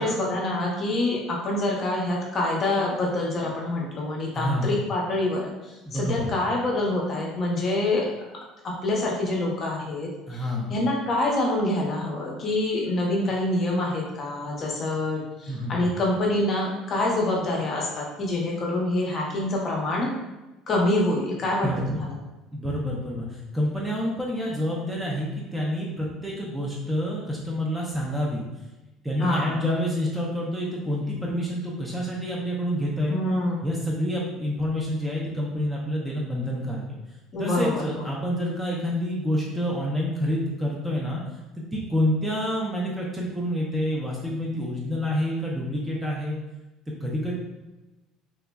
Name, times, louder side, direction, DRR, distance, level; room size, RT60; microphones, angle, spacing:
voice 1, 0.0-8.1 8.6-10.4 10.7-20.1 20.7-22.1 29.2-29.6 33.1-33.6 37.3-38.0, left 1 dB, 35° left, -2 dB, 0.6 m, -26 dB
voice 2, 4.3-4.7 5.9-6.3 10.3-10.8 15.5-15.9 21.6-22.1 22.5-28.4 29.0-33.2 33.6-37.0 37.4-41.2 41.6-46.4 47.0-47.3, equal, 10° right, -3 dB, 0.4 m, -28 dB
3.3 x 2.0 x 2.2 m, 1.1 s
cardioid pair, 135°, 0 cm